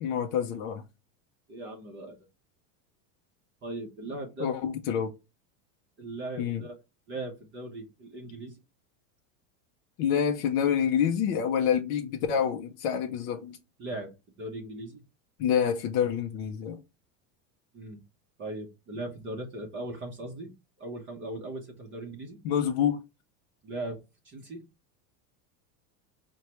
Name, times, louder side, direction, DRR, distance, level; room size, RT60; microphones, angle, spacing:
voice 1, 0.0-0.8 4.4-5.1 6.4-6.6 10.0-13.6 15.4-16.8 22.4-23.0, left 8 dB, 35° left, 0.4 m, -27 dB
voice 2, 1.5-2.2 3.6-4.5 6.0-6.7 7.1-8.6 13.8-15.0 17.7-18.0 18.4-20.5 20.8-22.4 23.6-24.0 24.2-24.7, right 2 dB, 25° right, 0.7 m, -38 dB
4.7 x 2.2 x 2.9 m
supercardioid pair, 150°, 48 cm